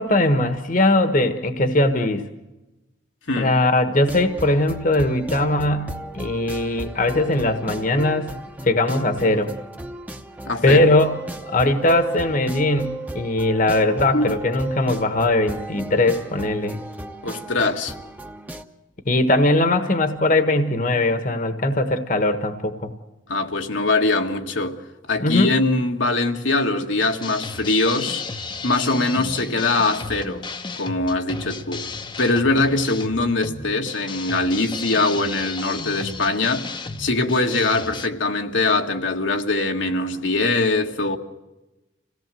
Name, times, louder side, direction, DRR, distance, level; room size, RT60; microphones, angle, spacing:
voice 1, 0.0-2.2 3.4-8.3 8.6-9.5 10.6-11.1 11.4-16.8 19.0-22.9 25.2-25.5, left 2 dB, 45° left, 1.4 m, -20 dB
sound 1, 4.0-18.6, right 1 dB, 10° right, 1.0 m, -35 dB
voice 2, 10.4-10.8 14.1-14.3 17.2-17.9 23.3-24.8 25.1-28.2 28.6-30.4 30.8-31.8 32.2-36.7 37.0-41.2, left 2 dB, 75° left, 1.7 m, -22 dB
sound 2, 27.0-38.1, left 3 dB, 25° left, 0.9 m, -34 dB
27.0 x 17.5 x 7.6 m
head